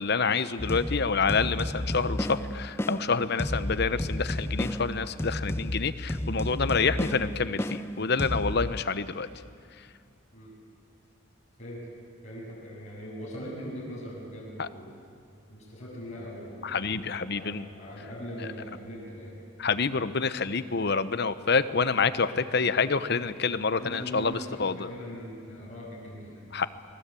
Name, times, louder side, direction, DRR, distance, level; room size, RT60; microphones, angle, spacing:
voice 1, 0.0-9.3 14.6-14.7 16.6-17.6 19.6-24.8 26.5-26.7, left 5 dB, 55° left, 12 dB, 0.9 m, -27 dB
sound 1, 0.6-8.8, left 1 dB, 10° left, 0.5 m, -32 dB
voice 2, 11.6-11.9 12.2-14.9 15.5-19.3 23.7-26.4, equal, 35° left, -6 dB, 7.7 m, -41 dB
29.0 x 20.0 x 8.4 m, 2.4 s
head